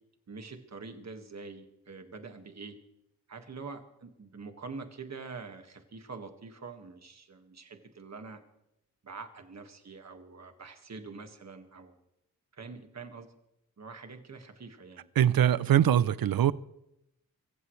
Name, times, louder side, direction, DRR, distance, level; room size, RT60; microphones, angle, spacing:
voice 1, 0.3-2.8 3.3-8.4 9.0-12.0 12.5-13.3 13.8-15.1, right 4 dB, 50° right, 1.8 m, -45 dB
voice 2, 15.2-16.5, right 10 dB, 85° right, 0.6 m, -23 dB
24.0 x 15.5 x 3.2 m
wide cardioid pair, 140°, 34 cm